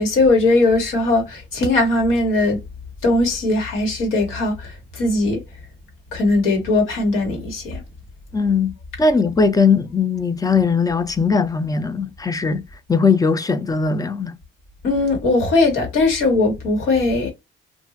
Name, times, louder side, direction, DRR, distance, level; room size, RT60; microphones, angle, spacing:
voice 1, 0.0-2.6 3.0-5.4 6.1-7.8 14.8-17.3, left 2 dB, 85° left, 1.4 m, -19 dB
voice 2, 8.3-8.7 9.0-12.6 12.9-14.3, left 4 dB, 20° left, 0.5 m, -19 dB
2.9 x 2.5 x 2.5 m
cardioid pair, 90°, 20 cm